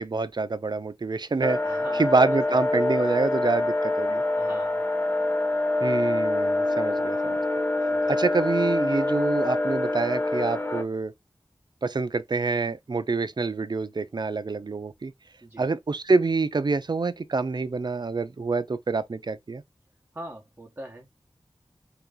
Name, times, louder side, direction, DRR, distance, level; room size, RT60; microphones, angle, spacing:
voice 1, 0.0-1.6 1.9-4.2 5.8-7.4 8.1-11.1 11.8-15.1 15.6-19.6, right 3 dB, 55° right, 0.5 m, -26 dB
sound 1, 1.4-10.8, left 2 dB, 20° left, 0.7 m, -25 dB
voice 2, 1.6-2.8 4.4-4.8 7.9-8.1 15.4-15.7 20.1-21.1, right 1 dB, 20° right, 1.0 m, -42 dB
3.8 x 2.9 x 3.6 m
wide cardioid pair, 65°, 9 cm